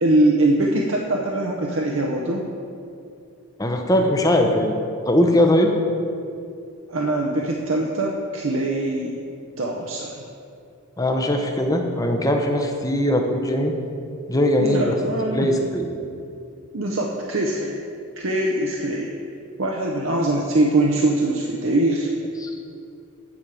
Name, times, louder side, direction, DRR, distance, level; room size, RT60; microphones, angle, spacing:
voice 1, 0.0-2.4 6.9-9.2 9.6-10.2 14.6-15.5 16.7-17.8 18.2-19.1 19.6-22.1, right 1 dB, 60° right, -1 dB, 0.8 m, -22 dB
voice 2, 3.6-4.8 5.1-5.7 11.0-13.7 14.3-15.0 15.3-15.9 22.4-22.5, left 1 dB, 15° left, 3 dB, 0.7 m, -20 dB
9.7 x 5.2 x 7.3 m, 2.5 s
head